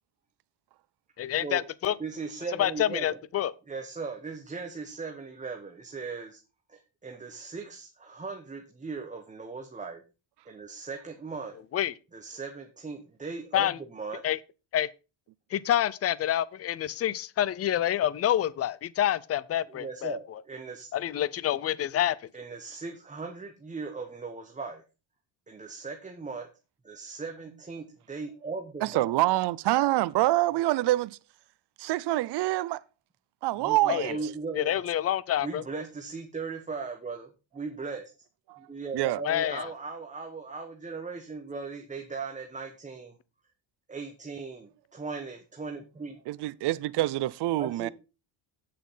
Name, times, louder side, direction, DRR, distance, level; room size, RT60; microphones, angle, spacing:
voice 1, 1.2-2.0 2.6-3.5 11.7-11.9 13.5-13.8 14.2-14.4 14.7-14.9 15.5-20.2 20.9-22.2 33.9-34.2 34.6-35.6 39.2-39.7, left 11 dB, 30° left, 0.5 m, -27 dB
voice 2, 2.0-3.2 3.7-6.4 6.7-10.0 10.4-11.6 12.1-14.2 19.7-20.9 22.3-24.8 25.5-26.5 26.8-29.1 33.6-34.8 35.4-38.1 38.6-43.1 43.9-46.2 47.6-47.9, right 4 dB, 15° right, 1.1 m, -38 dB
voice 3, 28.8-31.2 31.8-32.8 33.4-34.2 38.5-38.6 38.9-39.2 46.3-47.9, right 17 dB, 55° right, 0.6 m, -26 dB
8.6 x 7.3 x 5.6 m
cardioid pair, 150°, 48 cm